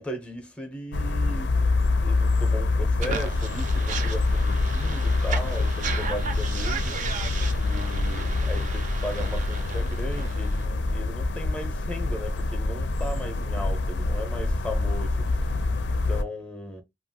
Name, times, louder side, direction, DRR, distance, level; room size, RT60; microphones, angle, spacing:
voice 1, 0.0-1.6 2.0-7.2 7.6-15.3 15.9-16.8, left 1 dB, 5° left, 0.6 m, -37 dB
sound 1, 0.9-16.2, left 3 dB, 85° left, 0.4 m, -26 dB
sound 2, 3.0-10.6, right 6 dB, 45° right, 0.4 m, -36 dB
2.8 x 2.3 x 2.6 m
head